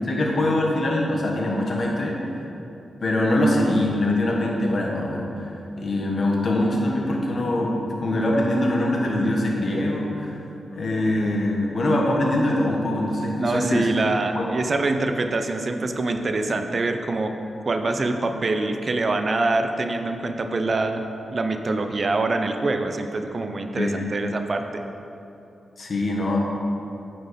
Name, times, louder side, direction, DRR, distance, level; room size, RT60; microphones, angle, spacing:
voice 1, 0.0-2.2 3.0-10.4 10.7-13.9 14.3-14.5 23.7-24.0 25.8-26.4, left 1 dB, 55° left, -1 dB, 1.4 m, -23 dB
voice 2, 13.4-17.3 17.6-21.0 21.3-24.8, right 2 dB, 50° right, 6 dB, 0.5 m, -25 dB
8.9 x 4.4 x 5.1 m, 2.9 s
cardioid pair, 65°, 0 cm